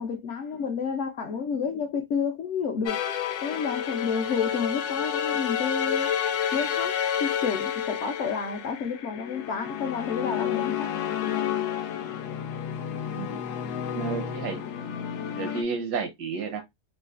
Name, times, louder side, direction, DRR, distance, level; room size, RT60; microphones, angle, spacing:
voice 1, 0.0-3.0 3.4-6.1 6.5-10.9, left 6 dB, 65° left, 0.8 m, -30 dB
sound 1, 2.9-15.6, left 9 dB, 80° left, 1.1 m, -30 dB
voice 2, 13.9-14.6 15.3-16.6, right 5 dB, 85° right, 1.3 m, -31 dB
3.8 x 2.4 x 2.4 m
omnidirectional pair, 1.7 m